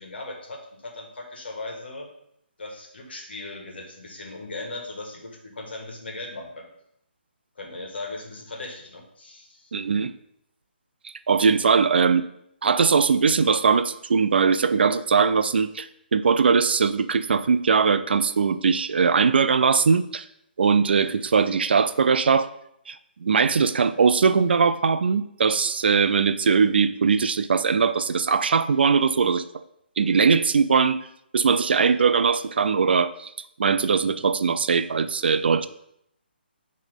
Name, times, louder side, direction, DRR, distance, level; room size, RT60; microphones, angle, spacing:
voice 1, 0.0-2.1 2.6-6.7 7.5-9.7, left 2 dB, 70° left, 1 dB, 1.6 m, -38 dB
voice 2, 9.7-10.1 11.3-12.2 12.6-20.2 20.6-22.5 22.9-23.0 23.2-29.4 30.0-31.0 31.3-33.3 33.6-35.7, right 5 dB, 65° right, 12 dB, 0.4 m, -20 dB
8.9 x 3.2 x 3.6 m, 0.75 s
figure-of-eight pair, 150°, 6 cm